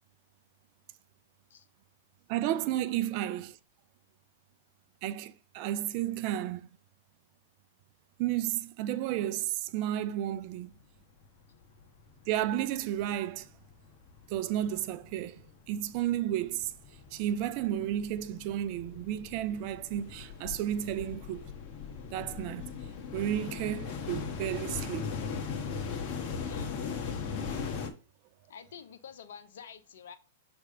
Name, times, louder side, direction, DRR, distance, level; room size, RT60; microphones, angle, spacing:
voice 1, 2.3-3.6 5.0-6.7 8.2-10.7 12.3-13.5 14.3-15.4 15.7-16.7 17.1-21.4 22.1-22.7 23.1-25.1, right 12 dB, 45° right, 0.5 m, -32 dB
sound 1, 11.2-11.3 11.6-12.6 12.9-27.9, left 6 dB, 45° left, 1.3 m, -39 dB
voice 2, 26.4-26.8 28.5-30.2, left 7 dB, 70° left, 0.9 m, -48 dB
6.5 x 3.5 x 5.1 m
hypercardioid pair, 115°, 0 cm